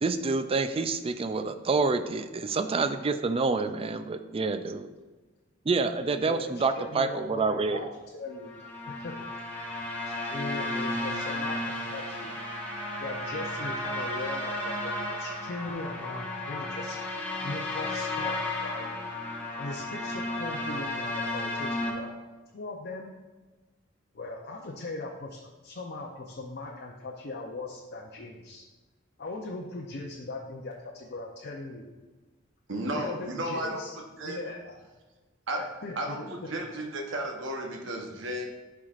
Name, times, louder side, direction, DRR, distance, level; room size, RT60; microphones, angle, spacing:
voice 1, 0.0-4.9 5.7-7.8, right 4 dB, 30° right, 9 dB, 0.4 m, -28 dB
voice 2, 6.2-7.9 8.1-9.3 9.8-12.4 13.0-17.0 17.4-18.9 19.6-22.1 22.5-23.1 24.1-28.6 29.2-31.9 32.9-33.9 34.2-34.8 35.5-36.3, left 2 dB, 50° left, 0 dB, 0.6 m, -39 dB
sound 1, 8.4-21.9, left 1 dB, 10° left, 1.3 m, -33 dB
voice 3, 32.7-33.8 34.2-34.4 35.5-35.6 36.0-38.5, right 1 dB, 65° right, 2 dB, 1.0 m, -33 dB
11.0 x 4.7 x 2.5 m, 1.2 s
head